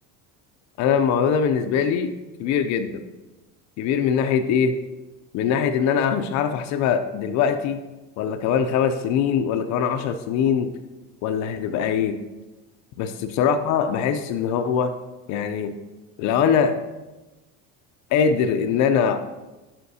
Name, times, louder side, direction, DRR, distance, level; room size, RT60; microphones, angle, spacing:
voice 1, 0.8-2.1 2.4-3.0 3.8-4.8 5.3-7.8 8.2-10.7 11.2-12.2 13.0-14.9 15.3-15.7 16.2-16.8 18.1-19.3, left 7 dB, 50° left, 8 dB, 0.5 m, -22 dB
11.5 x 5.7 x 2.7 m, 1.1 s
cardioid pair, 160°, 38 cm